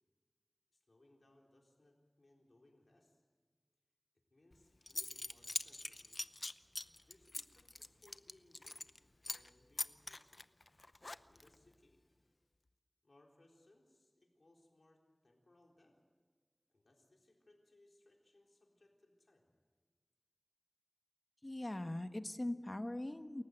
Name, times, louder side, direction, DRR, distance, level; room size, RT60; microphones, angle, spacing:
voice 1, 0.7-3.2 4.3-6.2 7.1-10.4 11.2-12.0 13.0-16.0 16.7-19.5, left 1 dB, 85° left, 0 dB, 3.9 m, -69 dB
Zipper (clothing) / Coin (dropping), 4.5-4.6 4.9-9.0 9.2-9.5 9.8-11.5, left 2 dB, 60° left, 0.7 m, -43 dB
voice 2, 21.4-23.4, left 1 dB, 40° left, 9 dB, 1.2 m, -41 dB
28.5 x 15.0 x 8.0 m, 1.5 s
wide cardioid pair, 45°, 0 cm